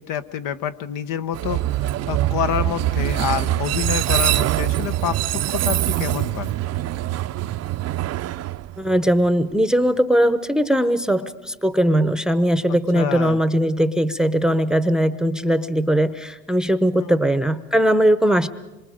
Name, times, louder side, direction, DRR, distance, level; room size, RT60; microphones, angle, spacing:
voice 1, 0.0-6.5 12.7-13.4 17.0-17.2, left 9 dB, 65° left, 10 dB, 1.1 m, -27 dB
Train, 1.3-9.3, right 14 dB, 45° right, 0.7 m, -23 dB
voice 2, 8.8-18.5, right 1 dB, ahead, 13 dB, 0.9 m, -19 dB
26.5 x 24.0 x 5.1 m, 1.0 s
supercardioid pair, 95°, 34 cm